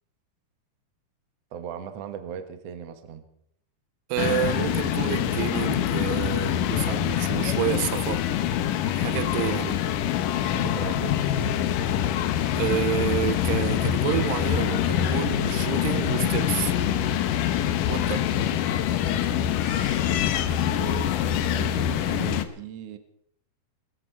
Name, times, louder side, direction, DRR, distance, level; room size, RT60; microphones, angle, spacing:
voice 1, 1.5-3.2 9.5-9.8 10.5-11.6 18.3-18.6 19.0-20.1 20.6-23.0, right 8 dB, 60° right, 1.7 m, -39 dB
voice 2, 4.1-8.3 9.0-9.8 12.6-16.7 17.9-18.3, right 13 dB, 85° right, 2.8 m, -29 dB
sound 1, 4.2-22.5, left 10 dB, 70° left, 2.2 m, -25 dB
22.0 x 14.0 x 4.5 m
omnidirectional pair, 4.7 m